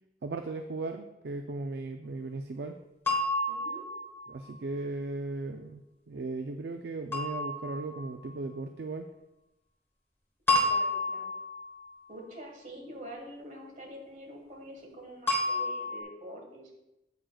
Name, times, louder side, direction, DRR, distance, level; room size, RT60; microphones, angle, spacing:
voice 1, 0.2-2.8 4.3-9.1, right 3 dB, 60° right, 6 dB, 0.4 m, -37 dB
sound 1, 3.1-4.5 7.1-8.3 10.5-11.9 15.3-16.0, left 2 dB, 15° left, 1.2 m, -30 dB
voice 2, 3.5-3.8 10.6-11.3 12.1-16.7, right 1 dB, 45° right, 1 dB, 1.5 m, -46 dB
9.0 x 7.5 x 2.3 m, 0.92 s
head